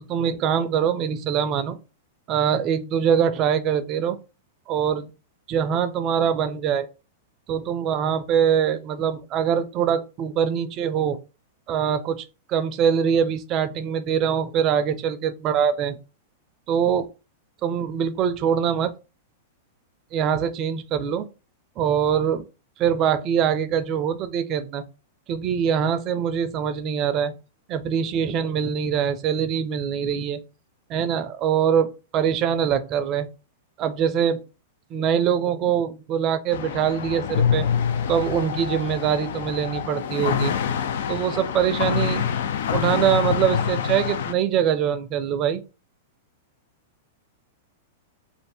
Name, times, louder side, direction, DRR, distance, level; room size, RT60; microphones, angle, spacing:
voice 1, 0.0-1.8 2.3-4.2 4.7-5.1 5.5-6.8 7.5-11.2 11.7-16.0 16.7-17.1 17.6-18.9 20.1-21.3 21.8-22.4 22.8-24.8 25.3-27.3 27.7-30.4 30.9-31.9 32.1-33.3 33.8-34.4 34.9-37.7 38.1-40.5 41.1-42.3 42.7-45.6, right 8 dB, 40° right, 0.4 m, -23 dB
sound 1, 36.5-44.3, left 7 dB, 70° left, 0.3 m, -26 dB
2.6 x 2.1 x 3.3 m
hypercardioid pair, 120°, 0 cm